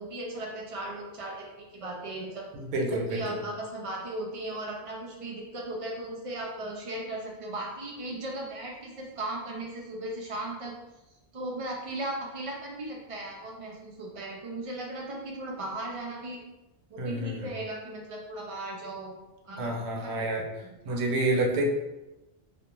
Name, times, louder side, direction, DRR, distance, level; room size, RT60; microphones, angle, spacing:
voice 1, 0.0-1.4 1.7-2.5 2.9-10.7 11.3-16.4 16.9-19.1 19.4-20.5 20.8-21.0, right 1 dB, 60° right, -1 dB, 0.3 m, -37 dB
voice 2, 2.7-3.4 17.0-17.5 19.6-20.5 20.9-21.6, right 2 dB, 80° right, 0 dB, 0.8 m, -28 dB
2.3 x 2.1 x 2.9 m, 0.99 s
omnidirectional pair, 1.1 m